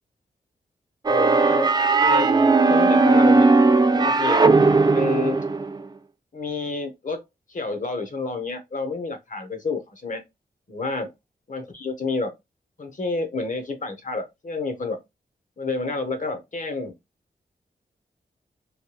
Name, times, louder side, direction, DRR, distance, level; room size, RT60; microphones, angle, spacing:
voice 1, 1.1-1.7 2.0-2.3 2.7-3.5 4.0-4.5 4.9-5.4 6.3-7.2 7.5-10.2 10.7-11.1 11.5-12.3 12.8-15.0 15.6-16.9, left 3 dB, 45° left, 0.9 m, -29 dB
sound 1, 1.1-5.8, right 3 dB, 25° right, 0.4 m, -17 dB
3.2 x 2.2 x 3.0 m
cardioid pair, 50°, 18 cm